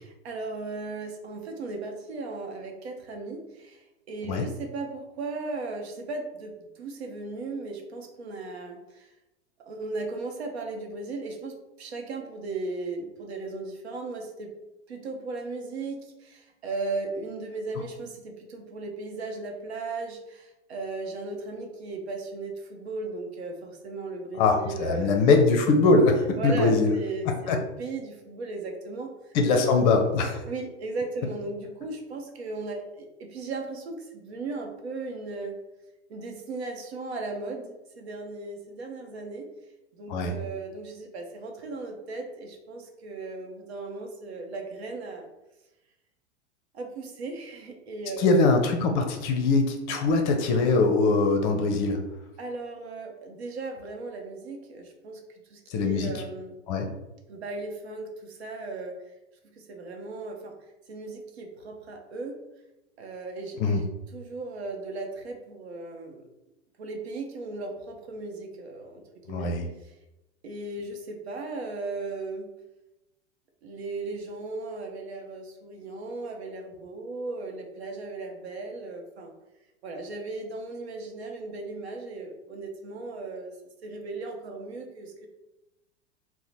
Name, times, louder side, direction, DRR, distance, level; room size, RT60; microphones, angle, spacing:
voice 1, 0.0-9.1 9.7-14.5 14.9-25.2 26.4-29.1 30.4-35.5 36.1-39.5 39.9-45.3 46.7-48.3 52.4-55.2 55.5-56.5 57.3-58.9 59.7-60.5 60.9-62.4 63.0-63.9 64.1-66.2 66.8-69.0 69.3-69.6 70.4-72.5 73.6-79.3 79.8-83.5 83.8-85.3, right 3 dB, 65° right, 2 dB, 0.8 m, -36 dB
voice 2, 24.4-26.9 27.5-27.6 29.3-30.4 40.1-40.3 48.2-52.0 55.7-56.1 56.7-56.9 63.6-63.8 69.3-69.7, left 3 dB, 40° left, 4 dB, 0.6 m, -22 dB
2.8 x 2.1 x 4.1 m, 0.97 s
figure-of-eight pair, 95°, 35 cm